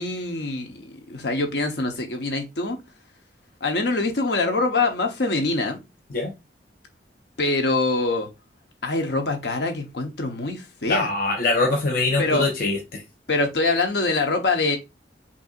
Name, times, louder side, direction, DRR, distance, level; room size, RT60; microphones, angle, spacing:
voice 1, 0.0-2.8 3.6-5.8 7.4-8.3 8.8-11.1 12.2-12.5 13.3-14.8, left 3 dB, 70° left, 0.9 m, -24 dB
voice 2, 10.9-13.0, left 3 dB, 55° left, 0.7 m, -23 dB
5.5 x 2.7 x 2.4 m
head